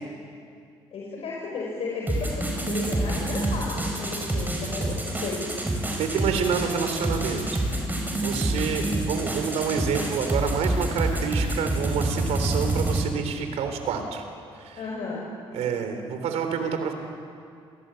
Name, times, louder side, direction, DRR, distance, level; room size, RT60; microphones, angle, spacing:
voice 1, 0.9-5.5 14.7-15.3, left 3 dB, 65° left, -3 dB, 5.7 m, -34 dB
sound 1, 2.1-13.0, right 1 dB, 15° right, 5.8 m, -27 dB
voice 2, 6.0-7.6 8.1-14.2 14.6-14.8 15.5-16.9, right 6 dB, 80° right, 6 dB, 3.6 m, -28 dB
28.0 x 18.5 x 9.0 m, 2.3 s
cardioid pair, 85°, 11 cm